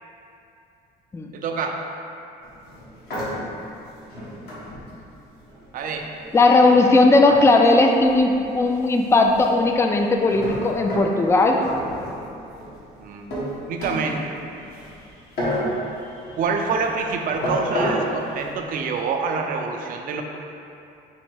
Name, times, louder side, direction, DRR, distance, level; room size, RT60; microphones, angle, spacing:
voice 1, 1.3-1.8 5.7-6.1 13.0-13.3 13.7-14.4 14.9-15.0 16.4-20.2, right 5 dB, 55° right, 3 dB, 0.5 m, -26 dB
sound 1, 2.4-19.0, equal, 65° left, 1.3 m, -32 dB
voice 2, 6.3-11.6, left 2 dB, 15° left, 3 dB, 0.3 m, -17 dB
5.4 x 2.1 x 4.5 m, 2.7 s
cardioid pair, 110°, 17 cm